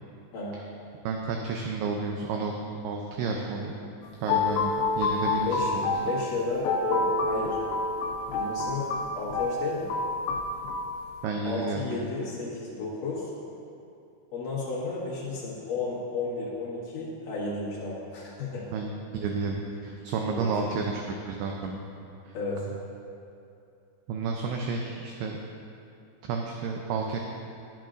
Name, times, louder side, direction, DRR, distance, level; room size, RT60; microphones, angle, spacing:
voice 1, 1.0-3.7 4.2-5.9 11.2-12.1 18.7-21.8 22.3-22.4 24.1-25.4 26.3-27.2, right 4 dB, 85° right, 1 dB, 2.3 m, -31 dB
sound 1, 4.1-11.0, left 3 dB, 80° left, 2.8 m, -28 dB
voice 2, 6.0-7.6 8.3-8.9 9.1-9.9 11.4-13.3 14.3-18.7 20.2-20.6 22.3-22.7, left 3 dB, 60° left, -7 dB, 2.7 m, -32 dB
10.5 x 8.8 x 2.5 m, 2.6 s
omnidirectional pair, 5.0 m